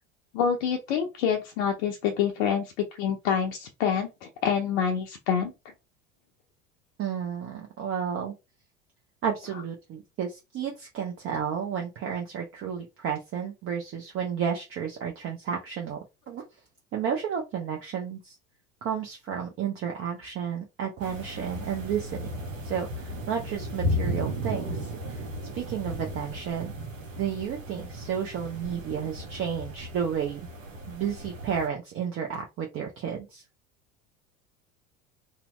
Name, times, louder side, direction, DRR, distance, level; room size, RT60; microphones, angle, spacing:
voice 1, 0.3-2.6 3.0-5.5, left 7 dB, 60° left, 2 dB, 0.6 m, -26 dB
voice 2, 7.0-8.3 9.2-16.0 16.3-16.4 16.9-18.4 18.8-22.3 22.6-25.2 25.5-26.8 27.2-30.5 30.9-33.4, right 8 dB, 35° right, 1 dB, 0.6 m, -32 dB
sound 1, 21.0-31.7, equal, 90° right, 0.8 m, -35 dB
2.7 x 2.0 x 3.0 m, 0.26 s
hypercardioid pair, 75°, 38 cm